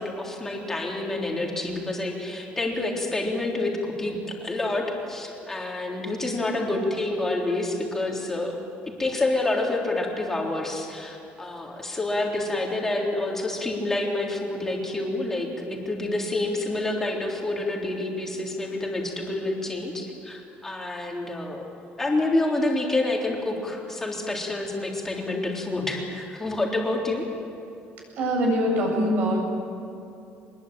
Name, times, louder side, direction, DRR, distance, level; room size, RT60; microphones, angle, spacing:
voice 1, 0.0-8.6 9.0-21.6 22.0-27.3, left 2 dB, 10° left, -1 dB, 3.8 m, -28 dB
voice 2, 28.2-29.4, equal, 50° right, 1 dB, 7.9 m, -23 dB
25.0 x 21.0 x 9.0 m, 2.8 s
cardioid pair, 170°, 4 cm